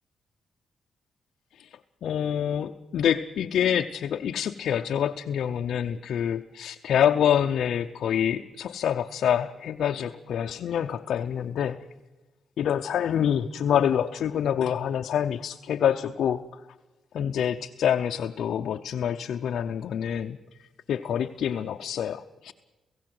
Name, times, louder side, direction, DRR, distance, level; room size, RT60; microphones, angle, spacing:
voice 1, 2.0-11.8 12.6-16.6 17.1-20.4 20.9-22.5, left 9 dB, 75° left, 3 dB, 0.7 m, -26 dB
28.5 x 16.0 x 7.8 m, 1.1 s
cardioid pair, 100°, 0 cm